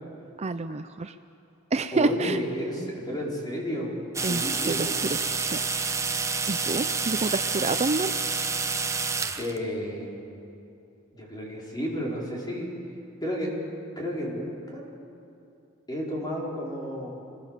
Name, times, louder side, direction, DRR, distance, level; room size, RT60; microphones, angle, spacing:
voice 1, 0.4-1.2 1.7-2.4 4.2-5.6 6.5-8.1, right 3 dB, 30° right, 10 dB, 0.5 m, -28 dB
voice 2, 1.9-4.0 4.2-4.8 9.4-10.2 11.1-12.7 13.2-13.5 14.0-14.8 15.9-17.1, equal, 20° left, -3 dB, 4.6 m, -32 dB
sound 1, 4.1-9.6, right 4 dB, 15° right, 0.8 m, -28 dB
26.5 x 20.5 x 7.4 m, 2.6 s
head